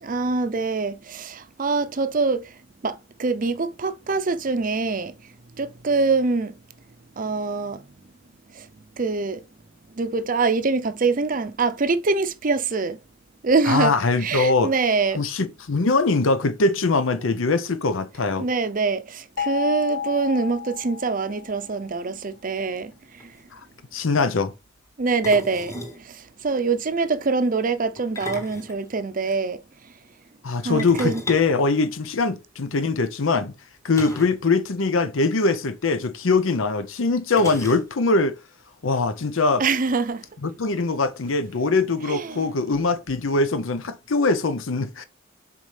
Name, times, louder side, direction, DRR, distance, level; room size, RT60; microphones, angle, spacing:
voice 1, 0.0-2.5 2.8-5.2 5.6-6.5 7.2-7.9 8.5-8.7 9.0-9.4 9.9-13.0 13.4-13.9 14.2-15.2 18.4-23.3 25.0-29.6 30.6-31.2 39.6-40.2 42.1-42.5, right 4 dB, 40° right, 0.6 m, -24 dB
voice 2, 13.7-14.7 15.2-18.5 23.5-23.6 23.9-24.5 30.4-33.5 33.8-38.4 38.8-39.6 40.4-45.0, left 3 dB, 75° left, 0.7 m, -22 dB
sound 1, 19.4-21.6, left 8 dB, 50° left, 0.3 m, -31 dB
sound 2, 22.9-23.0 23.2-23.4 25.2-26.0 28.0-29.4 30.8-32.4 33.9-34.4 34.7-34.8 35.1-35.3 36.3-36.4 37.3-38.2, left 1 dB, 15° left, 1.1 m, -36 dB
7.2 x 4.2 x 3.3 m
head